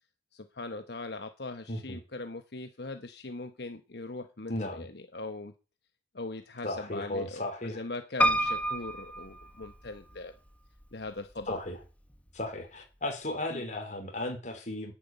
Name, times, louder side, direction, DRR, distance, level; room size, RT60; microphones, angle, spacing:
voice 1, 0.3-5.5 6.1-10.3 10.9-11.6 13.5-13.6, left 2 dB, 65° left, 1.1 m, -40 dB
voice 2, 1.7-2.0 4.5-4.9 6.6-7.8 11.5-11.8 12.3-14.9, left 1 dB, 45° left, 4.1 m, -35 dB
Piano, 8.2-10.2 10.8-11.5 11.8-11.9 12.1-12.2, equal, 10° left, 1.2 m, -29 dB
11.0 x 9.2 x 9.2 m
head